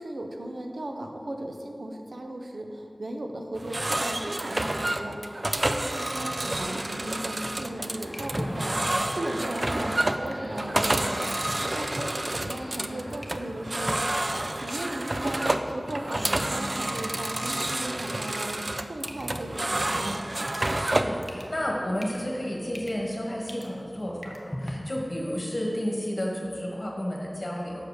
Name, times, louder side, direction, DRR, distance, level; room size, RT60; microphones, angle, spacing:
voice 1, 0.0-11.3 11.6-20.2, right 1 dB, 90° right, 3 dB, 0.7 m, -36 dB
sound 1, 3.6-21.2, right 1 dB, 45° right, 0.4 m, -29 dB
sound 2, 6.6-24.7, equal, 15° left, 0.9 m, -44 dB
sound 3, 6.9-14.2, equal, 15° right, 1.9 m, -42 dB
voice 2, 20.7-27.8, equal, 45° left, -2 dB, 1.6 m, -31 dB
6.6 x 4.8 x 6.5 m, 2.4 s
wide cardioid pair, 50°, 0 cm